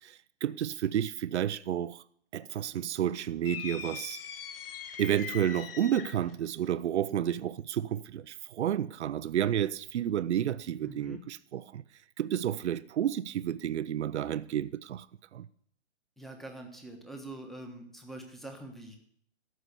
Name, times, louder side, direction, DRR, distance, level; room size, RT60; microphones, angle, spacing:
voice 1, 0.0-2.0 2.3-4.2 5.0-11.8 12.2-15.1 15.3-15.5, right 10 dB, 75° right, 0.6 m, -31 dB
sound 1, 3.5-6.3, left 8 dB, 55° left, 1.1 m, -41 dB
voice 2, 10.8-11.2 16.2-19.0, right 1 dB, ahead, 1.2 m, -44 dB
14.0 x 5.6 x 7.9 m
hypercardioid pair, 140°, 34 cm